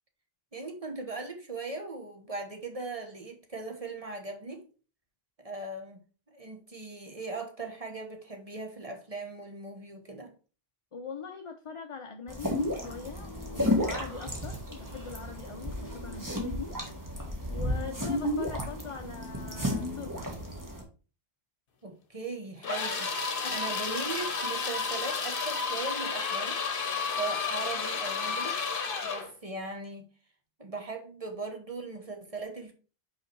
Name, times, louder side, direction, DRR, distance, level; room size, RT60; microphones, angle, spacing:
voice 1, 0.5-4.6 5.4-6.0 6.3-10.3 21.8-26.6 27.1-28.7 29.0-30.1 30.6-32.7, right 3 dB, 35° right, 1.2 m, -39 dB
voice 2, 10.9-16.7 17.5-20.3 23.4-23.6, left 5 dB, 35° left, 0.6 m, -42 dB
sound 1, 12.3-20.8, left 1 dB, 20° right, 1.5 m, -33 dB
sound 2, 22.6-29.3, left 5 dB, 60° left, 1.1 m, -32 dB
5.6 x 4.9 x 4.5 m
omnidirectional pair, 1.0 m